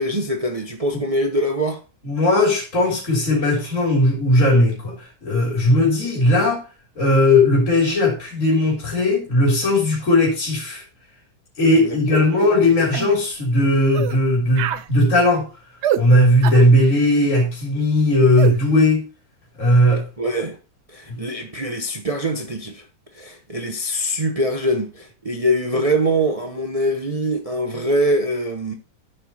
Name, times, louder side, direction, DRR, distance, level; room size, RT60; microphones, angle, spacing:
voice 1, 0.0-1.8 11.9-12.3 20.2-20.6 20.9-22.8 23.1-28.7, equal, 30° right, 0.7 m, -23 dB
voice 2, 2.0-4.9 5.2-6.6 6.9-10.8 11.6-15.5 15.9-19.0 19.6-20.1 21.1-21.2, left 1 dB, 50° left, 3.3 m, -17 dB
sound 1, 12.4-12.6 12.9-13.2 13.9-14.2 14.5-14.9 15.8-16.1 16.4-16.7 18.4-18.6, right 10 dB, 75° right, 0.6 m, -24 dB
11.0 x 4.9 x 4.1 m
omnidirectional pair, 1.8 m